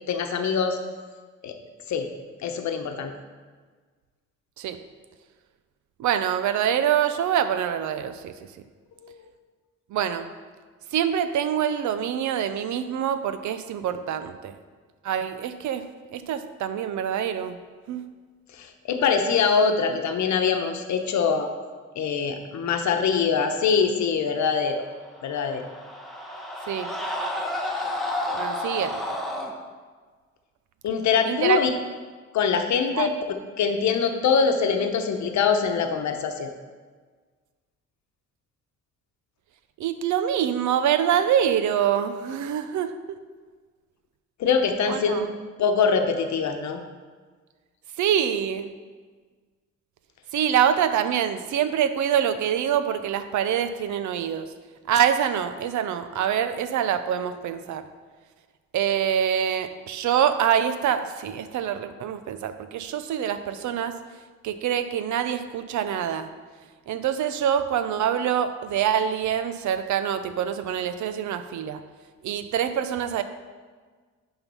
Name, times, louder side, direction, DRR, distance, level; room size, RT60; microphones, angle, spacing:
voice 1, 0.1-0.8 1.4-1.6 1.9-2.1 2.4-3.1 9.0-9.2 18.6-21.5 22.0-24.8 25.2-25.7 30.8-31.7 32.3-33.1 33.6-36.5 44.4-45.3 45.6-46.8, left 6 dB, 65° left, 5 dB, 1.0 m, -23 dB
voice 2, 6.0-8.3 9.9-10.3 10.9-14.6 15.0-15.9 16.1-17.6 17.9-18.0 26.7-26.9 28.3-29.0 31.3-31.6 33.0-33.1 39.8-42.9 44.9-45.3 48.0-48.7 50.3-54.5 54.9-57.9 58.7-64.0 64.4-66.3 66.9-71.8 72.2-73.2, right 9 dB, 70° right, 11 dB, 0.7 m, -25 dB
Screaming, 25.0-29.5, left 1 dB, ahead, 1.2 m, -31 dB
10.5 x 3.8 x 5.5 m, 1.5 s
cardioid pair, 90°, 30 cm